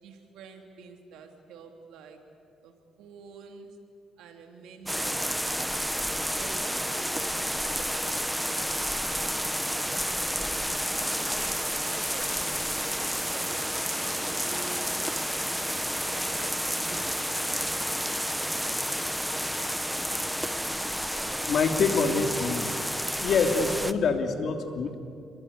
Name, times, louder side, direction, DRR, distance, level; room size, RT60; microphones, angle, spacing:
voice 1, 0.0-2.2 2.6-3.8 4.2-5.9 6.2-7.3 7.6-7.9 8.3-8.7 9.2-12.7 13.2-15.5 16.0-17.7 24.9-25.0, right 5 dB, 90° right, 4 dB, 3.3 m, -48 dB
sound 1, 4.9-23.9, equal, ahead, 1.2 m, -30 dB
voice 2, 21.2-22.8 23.2-24.9, left 4 dB, 65° left, 5 dB, 2.9 m, -26 dB
29.5 x 22.0 x 8.3 m, 2.5 s
cardioid pair, 90°, 0 cm